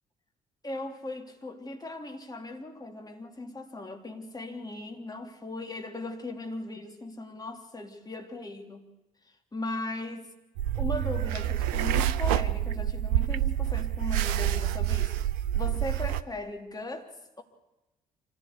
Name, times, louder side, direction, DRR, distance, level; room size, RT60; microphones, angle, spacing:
voice 1, 0.6-8.9 9.5-10.2 10.8-15.1 15.5-17.1, left 2 dB, 20° left, 3.3 m, -38 dB
sound 1, 10.6-16.2, right 11 dB, 65° right, 0.7 m, -27 dB
25.5 x 15.0 x 8.3 m
figure-of-eight pair, 45°, 19 cm